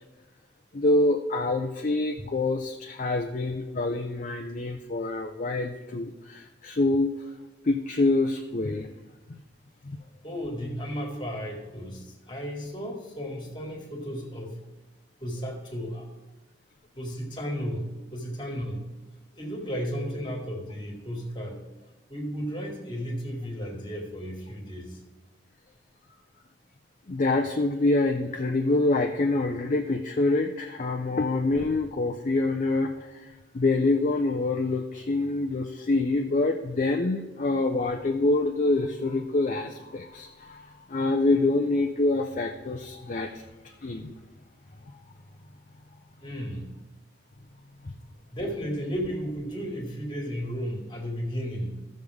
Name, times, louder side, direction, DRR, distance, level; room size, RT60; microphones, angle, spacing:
voice 1, 0.7-7.1 7.6-8.9 9.3-9.4 9.8-10.0 27.1-33.3 33.5-43.4 43.8-44.1 47.8-47.9, left 2 dB, 45° left, 3 dB, 0.5 m, -26 dB
voice 2, 10.2-14.5 15.2-16.0 17.0-17.9 18.1-18.8 19.4-21.6 22.1-25.0 46.2-46.6 48.3-51.7, equal, 25° left, 1 dB, 1.9 m, -34 dB
15.0 x 6.5 x 3.5 m, 1.1 s
head